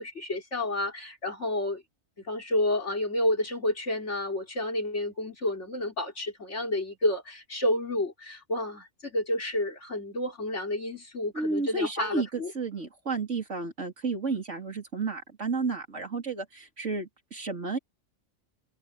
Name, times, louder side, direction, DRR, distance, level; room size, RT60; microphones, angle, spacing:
voice 1, 0.0-1.8 2.3-12.5, left 1 dB, 75° left, 4.2 m, -30 dB
voice 2, 11.3-17.8, right 3 dB, 80° right, 3.9 m, -32 dB
omnidirectional pair, 1.2 m